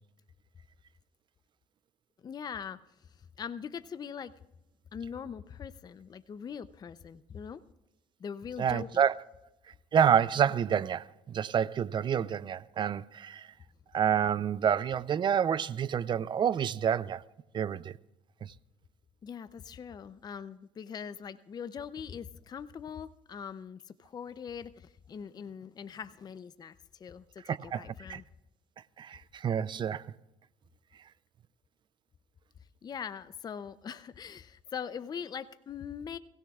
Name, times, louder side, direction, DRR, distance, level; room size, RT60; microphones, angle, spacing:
voice 1, 2.2-4.3 4.9-7.6 8.2-9.0 19.2-28.2 32.8-36.2, left 7 dB, 35° left, 0.6 m, -42 dB
voice 2, 8.6-9.1 9.7-13.5 13.9-17.2 17.5-18.0 18.4-18.5 27.4-28.2 29.0-30.1, right 8 dB, 40° right, 0.5 m, -28 dB
23.0 x 16.5 x 2.4 m
cardioid pair, 105°, 12 cm